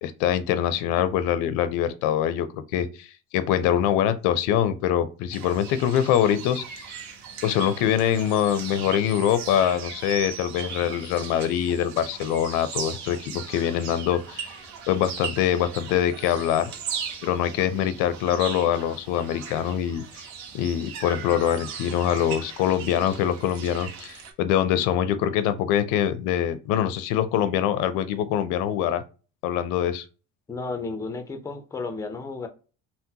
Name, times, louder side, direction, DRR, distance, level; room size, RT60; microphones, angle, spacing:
voice 1, 0.0-3.1 3.3-6.9 7.4-14.6 14.9-16.7 17.2-20.3 20.5-29.0 29.4-30.0, left 10 dB, 85° left, 0.5 m, -24 dB
sound 1, 5.3-24.3, right 6 dB, 65° right, 0.8 m, -38 dB
voice 2, 30.5-32.5, left 3 dB, 10° left, 0.5 m, -33 dB
3.7 x 2.1 x 2.7 m
cardioid pair, 145°, 30 cm